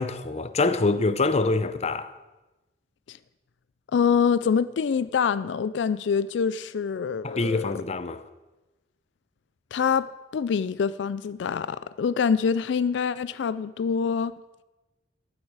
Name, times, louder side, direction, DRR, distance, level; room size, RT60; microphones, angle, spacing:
voice 1, 0.0-2.1 7.2-8.2, left 3 dB, 35° left, 0.6 m, -25 dB
voice 2, 3.9-7.7 9.7-14.3, left 6 dB, 80° left, 0.4 m, -25 dB
15.0 x 9.6 x 4.7 m
head